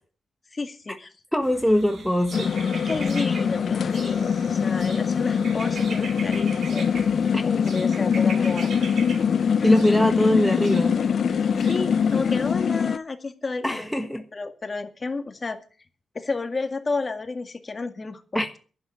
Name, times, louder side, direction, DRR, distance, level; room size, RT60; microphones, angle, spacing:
voice 1, 0.5-1.1 2.7-6.9 7.4-8.7 9.6-9.7 11.7-13.9 14.3-15.6 16.1-18.4, left 3 dB, 30° left, 7 dB, 2.0 m, -31 dB
voice 2, 1.3-2.5 7.3-7.4 9.6-11.0 13.6-14.2 18.3-18.6, equal, ahead, 5 dB, 1.5 m, -22 dB
sound 1, 1.4-12.5, right 4 dB, 55° right, 4.1 m, -41 dB
sound 2, 2.3-13.0, left 7 dB, 55° left, 0.7 m, -23 dB
11.5 x 9.1 x 8.5 m, 0.39 s
cardioid pair, 100°, 0 cm